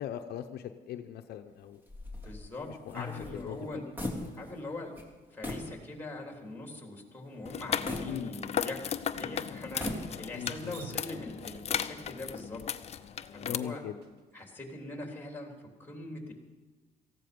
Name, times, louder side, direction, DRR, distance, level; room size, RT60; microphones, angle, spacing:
voice 1, 0.0-1.8 2.7-3.7 8.0-8.3 10.3-11.2 13.4-14.0, left 10 dB, 70° left, 7 dB, 0.8 m, -40 dB
sound 1, 1.9-4.7 4.9-5.1 5.4-5.7 6.2-6.3 7.9-8.9 9.6-10.5, left 1 dB, 10° right, 3.1 m, -39 dB
voice 2, 2.2-3.8 4.3-4.9 5.3-12.6 13.3-13.8 14.3-16.3, left 2 dB, 10° left, 2 dB, 3.5 m, -42 dB
sound 2, 7.5-13.6, left 8 dB, 40° left, 0.7 m, -36 dB
Drip, 10.3-14.5, right 7 dB, 80° right, 1.6 m, -50 dB
18.0 x 15.0 x 5.3 m, 1.3 s
cardioid pair, 110°, 17 cm